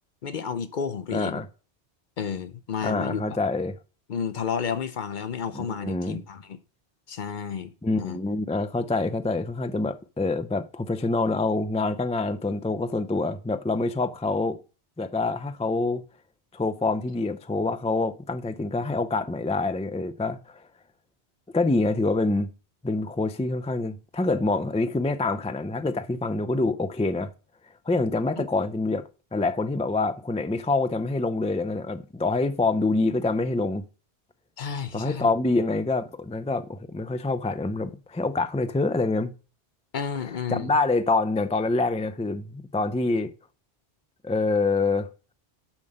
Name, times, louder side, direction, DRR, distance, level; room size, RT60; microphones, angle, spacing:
voice 1, 0.2-1.4 2.2-3.4 4.1-6.6 7.1-8.2 28.4-28.5 34.6-35.3 39.9-40.7, left 6 dB, 55° left, 0.7 m, -31 dB
voice 2, 1.1-1.5 2.8-3.8 5.5-6.2 7.8-14.6 15.0-16.0 16.5-20.6 21.5-22.5 22.8-27.3 27.9-33.8 34.9-39.3 40.5-43.3 44.2-45.1, left 3 dB, 10° left, 0.3 m, -26 dB
7.3 x 5.9 x 6.5 m
omnidirectional pair, 1.1 m